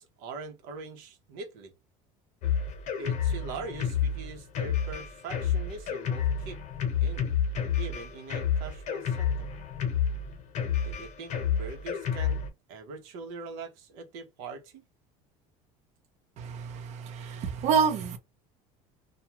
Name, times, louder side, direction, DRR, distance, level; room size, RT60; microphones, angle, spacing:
voice 1, 0.0-1.7 3.0-6.6 7.0-7.3 7.8-9.5 10.8-12.4 12.7-14.8, right 4 dB, 80° right, 0.9 m, -42 dB
Drum kit, 2.4-12.5, left 7 dB, 55° left, 0.9 m, -29 dB
voice 2, 16.4-18.2, right 6 dB, 50° right, 0.7 m, -28 dB
2.3 x 2.3 x 2.9 m
cardioid pair, 145°, 14 cm